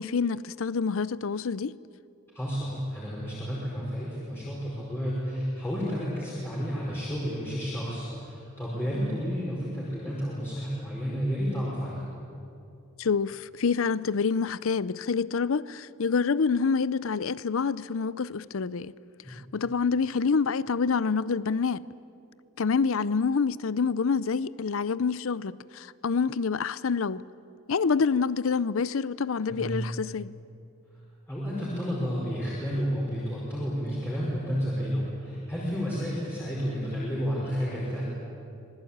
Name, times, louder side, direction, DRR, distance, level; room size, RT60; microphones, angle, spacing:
voice 1, 0.0-1.8 13.0-18.9 19.3-21.8 22.6-27.2 27.7-30.3, left 5 dB, 70° left, 0.5 m, -27 dB
voice 2, 2.3-12.0 29.5-29.8 31.3-38.1, equal, 10° left, 4.9 m, -31 dB
26.0 x 20.5 x 8.7 m
head